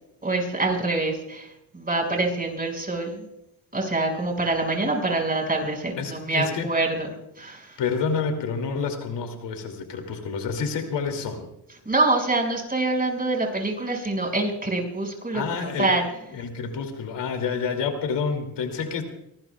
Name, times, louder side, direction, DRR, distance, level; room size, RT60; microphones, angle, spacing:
voice 1, 0.2-3.3 3.7-7.1 7.4-7.8 11.8-16.0, right 2 dB, 20° right, 1 dB, 5.9 m, -25 dB
voice 2, 6.0-6.7 7.8-11.4 15.3-15.9 16.3-19.0, left 5 dB, 85° left, 5 dB, 2.8 m, -28 dB
24.0 x 20.0 x 2.4 m, 0.82 s
cardioid pair, 85°, 41 cm